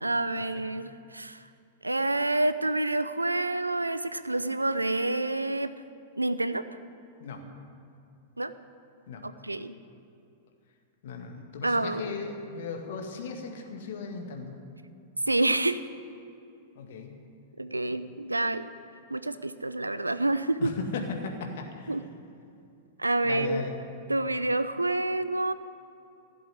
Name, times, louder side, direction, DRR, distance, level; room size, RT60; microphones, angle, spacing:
voice 1, 0.0-1.4 1.8-5.7 6.2-6.6 8.4-8.5 9.2-9.7 11.6-12.2 15.3-15.8 17.6-18.7 19.1-20.7 21.9-22.0 23.0-23.6 24.1-25.5, right 2 dB, 85° right, 13 dB, 0.6 m, -28 dB
voice 2, 11.0-14.6 16.8-17.1 20.5-22.0 23.2-23.7, left 4 dB, 55° left, 3 dB, 2.1 m, -36 dB
15.5 x 7.8 x 9.6 m, 2.5 s
figure-of-eight pair, 100°, 0 cm